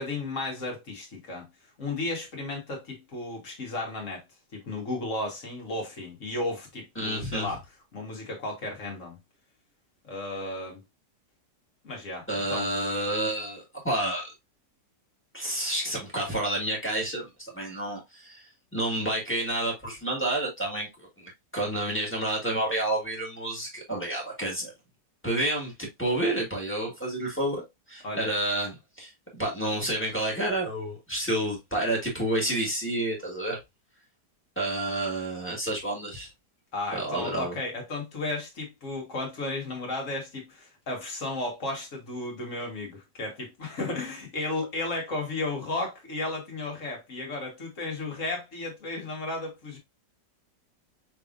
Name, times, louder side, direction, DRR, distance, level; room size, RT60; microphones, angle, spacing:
voice 1, 0.0-1.5 1.8-4.2 4.5-7.6 7.9-9.2 10.0-10.8 11.8-12.6 28.0-28.3 36.7-49.8, left 2 dB, 50° left, 1.7 m, -34 dB
voice 2, 6.9-7.5 12.3-14.3 15.3-24.7 25.2-27.6 27.9-33.6 34.5-36.3 36.9-37.5, right 1 dB, 5° left, 1.6 m, -30 dB
6.0 x 3.4 x 2.5 m
omnidirectional pair, 1.8 m